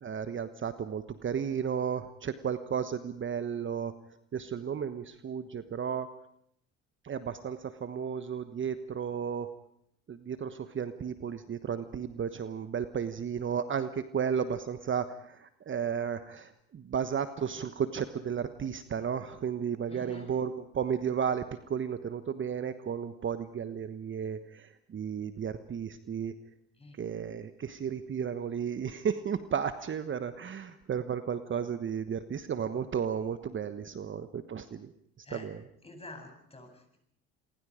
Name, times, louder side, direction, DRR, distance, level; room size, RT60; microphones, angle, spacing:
voice 1, 0.0-3.9 4.3-6.1 7.0-9.5 10.1-26.3 27.0-34.9 35.3-35.6, right 7 dB, 35° right, 11 dB, 1.2 m, -33 dB
voice 2, 19.9-20.3 26.8-27.0 35.2-35.5 35.8-37.0, left 1 dB, 15° left, 4 dB, 7.8 m, -48 dB
28.0 x 23.0 x 5.1 m, 0.70 s
hypercardioid pair, 70°, 33 cm